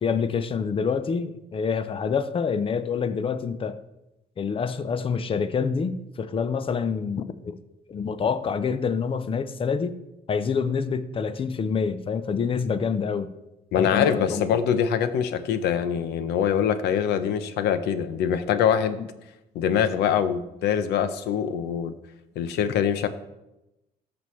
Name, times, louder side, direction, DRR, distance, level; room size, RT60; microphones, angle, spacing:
voice 1, 0.0-3.8 4.4-7.6 7.9-9.9 10.3-13.3 13.8-14.4 19.0-19.1, left 6 dB, 30° left, 13 dB, 0.6 m, -27 dB
voice 2, 13.7-19.0 19.5-21.9 22.4-23.1, left 8 dB, 80° left, 12 dB, 0.7 m, -24 dB
14.0 x 6.2 x 3.2 m, 0.93 s
cardioid pair, 110°, 17 cm